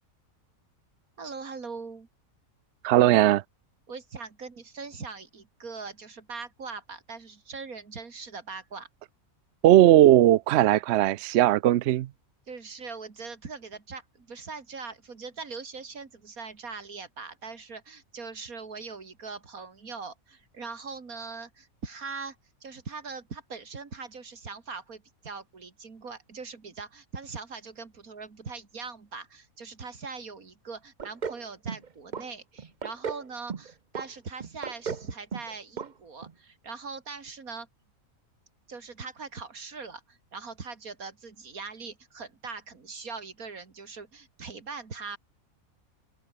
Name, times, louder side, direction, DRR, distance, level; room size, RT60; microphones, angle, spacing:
voice 1, 1.2-2.1 3.9-8.9 12.5-22.4 22.6-37.7 38.7-45.2, right 4 dB, 85° right, 3.0 m, -41 dB
voice 2, 2.8-3.4 9.6-12.1, right 14 dB, 65° right, 0.7 m, -18 dB
sound 1, 31.0-31.4 31.7-32.2 32.6-33.2 33.5-34.1 34.4-35.1 35.3-35.5 35.8-35.9 36.2-36.3, right 6 dB, 35° right, 0.9 m, -34 dB
omnidirectional pair, 1.5 m